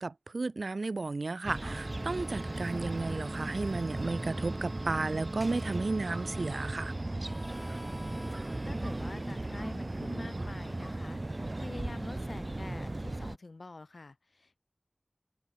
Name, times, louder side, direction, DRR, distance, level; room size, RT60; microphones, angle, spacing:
voice 1, 0.0-6.9, right 3 dB, 90° right, 1.1 m, -33 dB
sound 1, 1.4-13.4, right 2 dB, 45° right, 1.2 m, -36 dB
sound 2, 1.6-7.0, right 2 dB, 65° right, 4.3 m, -48 dB
Harmonica, 7.2-12.5, equal, 5° left, 4.7 m, -53 dB
voice 2, 8.7-14.6, left 3 dB, 80° left, 2.5 m, -47 dB
wide cardioid pair, 60°, 0 cm